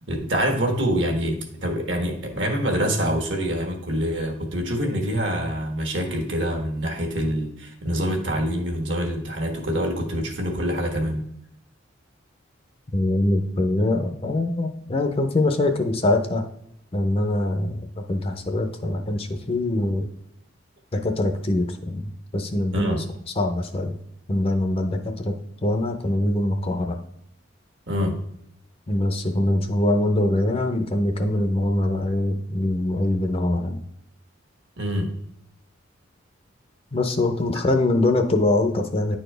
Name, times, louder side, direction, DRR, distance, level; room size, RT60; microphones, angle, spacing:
voice 1, 0.1-11.3 22.7-23.1 27.9-28.2 34.8-35.1, equal, 65° right, 3 dB, 1.4 m, -25 dB
voice 2, 12.9-16.4 16.9-20.1 20.9-23.0 23.4-24.0 24.3-25.3 25.6-27.0 28.9-33.8 36.9-39.2, left 1 dB, 30° left, 5 dB, 0.6 m, -23 dB
9.7 x 4.3 x 3.3 m, 0.75 s
head